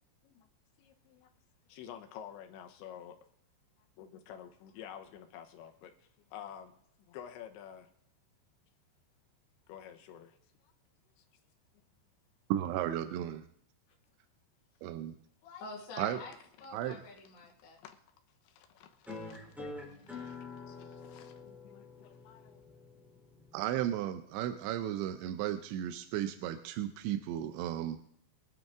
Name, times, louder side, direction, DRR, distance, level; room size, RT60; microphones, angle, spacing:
voice 1, 0.8-1.3 1.7-3.2 4.0-6.8 7.1-7.9 9.7-10.4 10.6-10.7 11.2-11.3 15.4-15.7 17.8-18.0 18.4-19.9 21.1-22.7, left 9 dB, 75° left, 5 dB, 3.3 m, -50 dB
voice 2, 12.5-13.4 14.8-15.2 16.0-16.2 16.7-17.0 23.5-28.1, right 11 dB, 80° right, 8 dB, 2.8 m, -34 dB
voice 3, 15.6-17.8, left 3 dB, 50° left, -3 dB, 2.7 m, -47 dB
sound 1, 19.1-24.1, left 3 dB, ahead, 2.1 m, -47 dB
23.5 x 9.3 x 3.7 m, 0.69 s
omnidirectional pair, 5.5 m